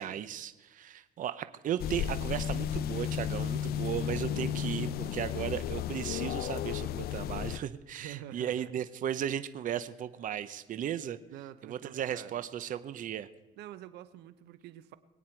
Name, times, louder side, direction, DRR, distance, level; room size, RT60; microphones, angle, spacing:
voice 1, 0.0-11.2 11.6-13.3, right 10 dB, 50° right, 13 dB, 0.8 m, -36 dB
sound 1, 1.8-7.6, left 10 dB, 65° left, 0.5 m, -33 dB
voice 2, 8.0-8.7 11.3-12.5 13.6-15.0, right 12 dB, 80° right, 14 dB, 0.8 m, -47 dB
22.5 x 9.4 x 4.6 m, 1.1 s
cardioid pair, 110°, 17 cm